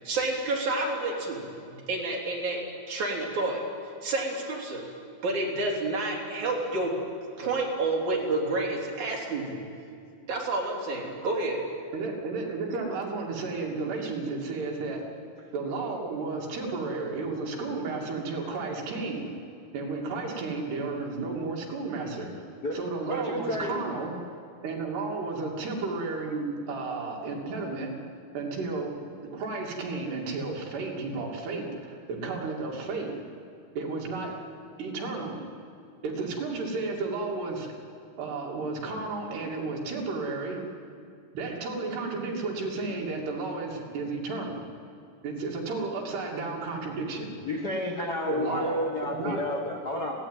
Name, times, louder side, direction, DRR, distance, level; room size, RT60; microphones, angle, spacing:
voice 1, 0.0-3.7 4.0-4.8 5.2-7.0 7.4-9.6 10.3-11.7, right 2 dB, 45° right, -2 dB, 4.7 m, -29 dB
voice 2, 11.9-15.1 15.5-19.4 19.7-22.4 22.7-24.2 24.6-27.9 28.3-29.0 29.2-33.2 33.8-34.4 34.8-35.4 36.0-37.7 38.2-40.6 41.3-44.6 45.2-47.3 48.3-49.7, right 3 dB, 70° right, -1 dB, 4.7 m, -33 dB
voice 3, 22.6-23.8 47.4-50.2, left 1 dB, 65° left, 0 dB, 1.0 m, -31 dB
25.0 x 17.0 x 9.2 m, 2.4 s
omnidirectional pair, 5.0 m